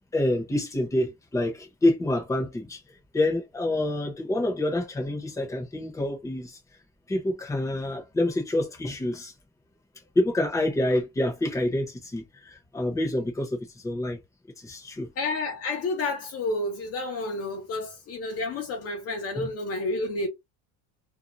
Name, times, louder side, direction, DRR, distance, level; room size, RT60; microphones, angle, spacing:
voice 1, 0.1-2.8 3.1-6.6 7.1-9.3 10.1-13.6 13.8-14.2 14.6-15.1 19.4-19.5, left 1 dB, 10° left, 0.9 m, -27 dB
voice 2, 15.2-20.3, left 2 dB, 40° left, 0.8 m, -30 dB
2.7 x 2.2 x 3.0 m
cardioid pair, 145°, 36 cm